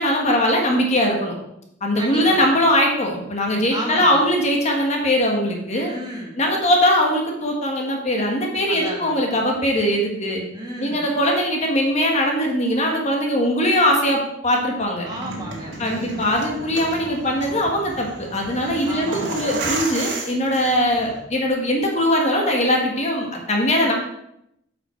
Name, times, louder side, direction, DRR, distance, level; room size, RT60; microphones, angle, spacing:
voice 1, 0.0-1.4 1.8-5.9 6.4-10.4 10.8-15.1 15.8-23.9, equal, 40° left, 1 dB, 1.5 m, -21 dB
voice 2, 2.0-2.6 3.7-4.3 5.8-6.4 8.7-9.3 10.5-11.1 15.0-16.2 18.8-19.5, right 1 dB, 25° right, -1 dB, 1.6 m, -33 dB
sound 1, 15.0-21.2, right 2 dB, 85° right, 1.7 m, -32 dB
8.3 x 5.8 x 4.5 m, 0.79 s
head